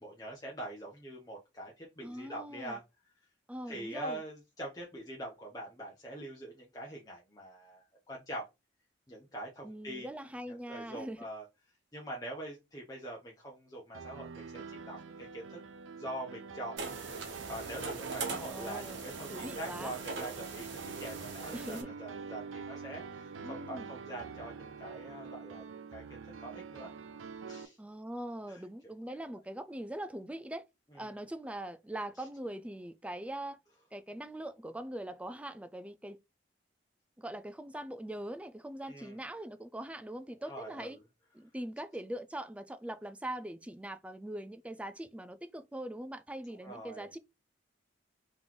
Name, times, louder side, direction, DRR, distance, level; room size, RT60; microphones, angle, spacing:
voice 1, 0.0-2.8 3.7-8.5 9.1-10.1 10.5-11.4 11.9-15.6 16.0-16.8 17.5-25.6 25.9-26.0 26.4-26.9 27.5-27.8 28.5-28.6 38.8-39.2 40.4-40.9 46.6-47.1, right 1 dB, 20° left, 0.8 m, -44 dB
voice 2, 2.0-2.8 3.5-4.2 9.6-11.3 18.2-19.0 19.3-19.9 21.5-21.9 23.4-23.9 27.8-30.7 30.9-33.6 33.9-36.2 37.2-41.0 41.3-47.2, right 1 dB, 5° right, 0.3 m, -42 dB
Piano, 13.9-27.7, right 5 dB, 90° right, 0.5 m, -46 dB
sound 1, 16.8-21.8, right 4 dB, 70° right, 1.0 m, -41 dB
3.9 x 3.0 x 3.8 m
head